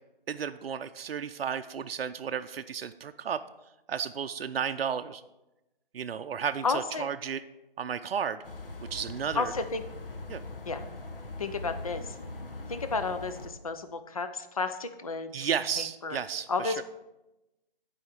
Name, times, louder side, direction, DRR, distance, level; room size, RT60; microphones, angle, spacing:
voice 1, 0.3-3.4 3.9-5.2 5.9-7.4 7.8-8.4 8.9-9.5 10.3-10.4 15.3-16.8, right 7 dB, 80° right, 8 dB, 0.5 m, -33 dB
voice 2, 6.6-7.1 9.3-9.8 10.7-10.9 11.4-12.1 12.7-15.3 16.0-16.2 16.5-16.8, left 4 dB, 40° left, 9 dB, 0.4 m, -32 dB
sound 1, 8.4-13.5, left 2 dB, 65° left, 1.1 m, -41 dB
10.5 x 4.9 x 4.8 m, 0.97 s
hypercardioid pair, 170°, 29 cm